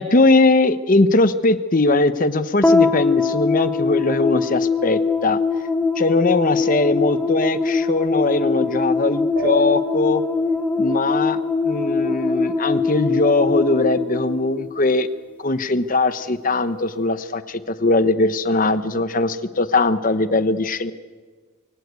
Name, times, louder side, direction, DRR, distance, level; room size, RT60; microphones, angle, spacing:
voice 1, 0.0-5.4 6.0-10.2 10.8-11.4 11.6-15.1 15.4-20.9, left 2 dB, 40° left, 12 dB, 0.9 m, -20 dB
sound 1, 2.6-15.1, left 4 dB, 5° left, 1.1 m, -22 dB
sound 2, 9.4-12.3, equal, 55° right, 3.4 m, -32 dB
23.0 x 17.5 x 8.3 m, 1.5 s
head